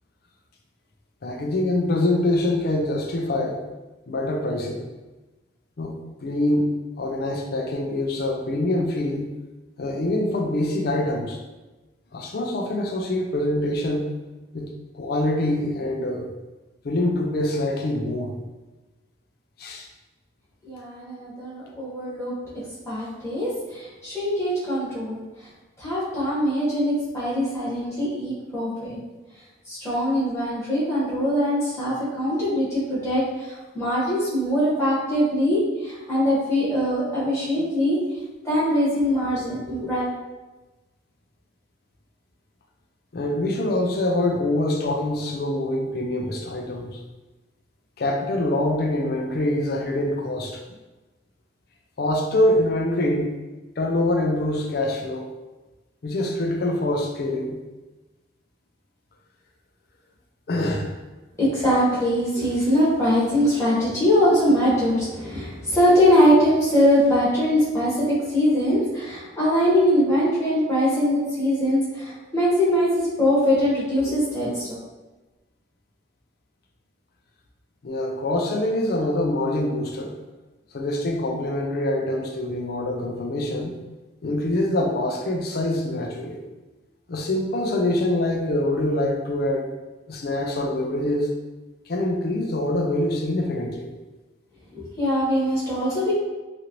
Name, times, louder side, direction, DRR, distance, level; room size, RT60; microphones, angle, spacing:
voice 1, 1.2-3.6 4.1-4.9 5.8-6.7 7.0-9.3 9.8-11.4 12.1-14.1 14.5-14.7 14.9-16.3 16.8-18.4 19.6-19.9 43.1-47.0 48.0-50.6 52.0-53.4 53.8-55.3 56.0-57.6 60.5-61.0 77.8-80.1 80.7-83.7 84.2-86.4 87.1-89.7 90.1-91.3 91.9-93.9, left 1 dB, 50° left, 2 dB, 0.4 m, -25 dB
voice 2, 20.6-25.2 25.8-29.0 29.7-38.0 38.4-40.1 61.4-74.8 94.7-96.1, equal, 15° left, -10 dB, 1.1 m, -22 dB
2.9 x 2.5 x 2.9 m, 1.1 s
head